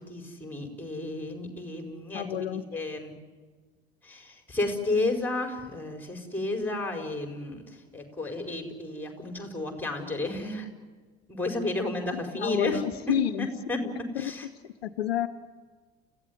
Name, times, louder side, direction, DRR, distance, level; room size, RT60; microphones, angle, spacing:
voice 1, 0.0-3.1 4.0-7.6 7.9-10.7 11.3-12.8 13.4-13.8 14.1-14.5, left 2 dB, 5° left, 5 dB, 4.9 m, -32 dB
voice 2, 2.1-2.8 12.4-13.5 13.8-14.3 14.8-15.3, left 10 dB, 70° left, 12 dB, 0.8 m, -30 dB
29.5 x 15.5 x 9.5 m, 1.4 s
figure-of-eight pair, 65°, 31 cm